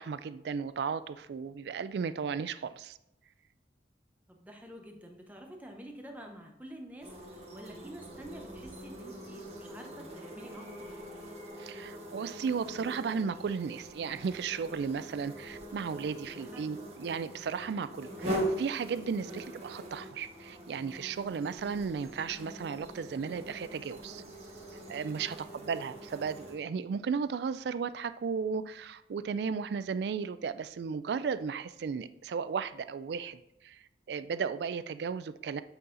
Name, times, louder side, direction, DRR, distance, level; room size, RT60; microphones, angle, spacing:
voice 1, 0.0-3.0 11.6-24.2 24.9-33.8 34.1-35.6, right 6 dB, 65° right, 14 dB, 0.3 m, -35 dB
voice 2, 4.3-11.0 16.4-16.8 19.2-19.3 25.2-25.6, right 1 dB, 10° right, 2 dB, 0.8 m, -49 dB
sound 1, 7.0-26.6, right 1 dB, 35° right, 1.4 m, -42 dB
8.1 x 4.0 x 3.8 m, 0.84 s
head